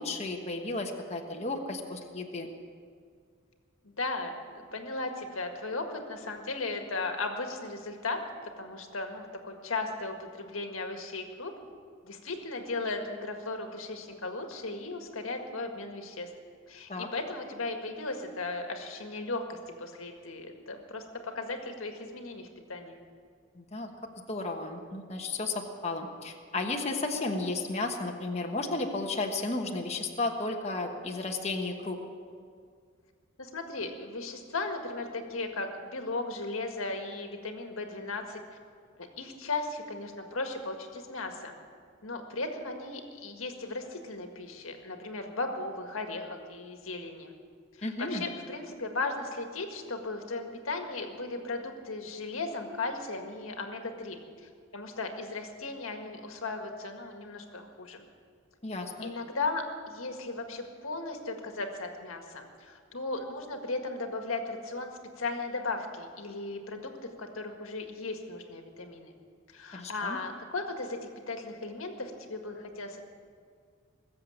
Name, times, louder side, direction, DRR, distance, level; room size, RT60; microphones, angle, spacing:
voice 1, 0.0-2.5 16.9-17.1 23.5-23.9 24.3-32.0 47.8-48.2 58.6-59.1 69.7-70.2, left 2 dB, 30° left, 2 dB, 1.3 m, -33 dB
voice 2, 3.8-11.5 12.0-16.3 16.7-23.0 33.4-38.4 39.0-41.5 42.0-47.3 47.8-58.0 59.0-66.9 67.2-69.1 69.5-71.0 71.3-73.0, left 3 dB, 85° left, 4 dB, 1.8 m, -36 dB
20.5 x 7.7 x 8.8 m, 2.1 s
head